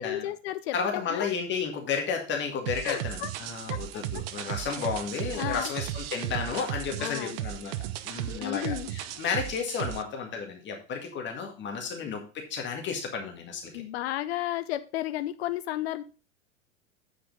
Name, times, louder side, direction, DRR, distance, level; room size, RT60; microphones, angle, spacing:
voice 1, 0.0-1.3 2.8-3.3 3.7-3.8 4.8-4.9 5.3-5.7 7.0-7.4 8.3-8.9 12.0-12.2 13.7-16.0, left 14 dB, 55° left, 12 dB, 0.9 m, -33 dB
voice 2, 0.7-7.8 8.0-13.8, left 6 dB, 30° left, 2 dB, 1.9 m, -32 dB
sound 1, 2.7-10.0, right 14 dB, 50° right, 0.7 m, -35 dB
9.0 x 5.0 x 5.1 m, 0.34 s
figure-of-eight pair, 90°, 37 cm